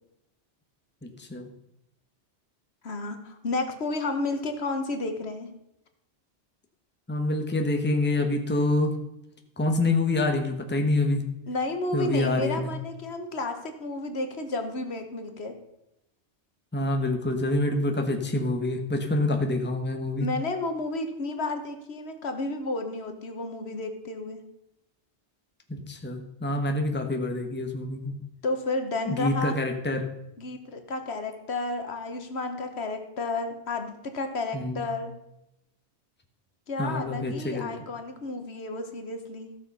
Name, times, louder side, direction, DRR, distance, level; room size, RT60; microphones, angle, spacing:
voice 1, 1.0-1.5 7.1-9.0 9.6-11.3 11.9-12.7 16.7-20.3 25.7-28.1 29.1-30.1 34.5-34.9 36.8-37.7, left 2 dB, 10° left, 4 dB, 1.1 m, -26 dB
voice 2, 2.8-5.5 11.5-15.6 20.2-24.4 28.4-29.5 30.4-35.1 36.7-39.6, left 2 dB, 65° left, 7 dB, 1.4 m, -32 dB
14.5 x 6.4 x 5.4 m, 0.86 s
omnidirectional pair, 1.2 m